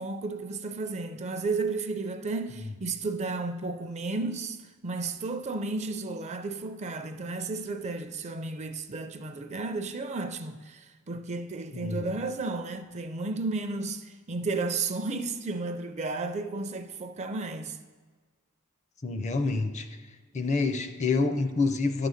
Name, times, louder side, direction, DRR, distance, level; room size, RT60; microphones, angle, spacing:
voice 1, 0.0-4.6 4.8-17.8, right 3 dB, 35° right, 0.4 m, -33 dB
voice 2, 11.7-12.0 19.0-19.9 20.3-22.1, left 3 dB, 35° left, 0.5 m, -27 dB
10.5 x 3.8 x 6.4 m
head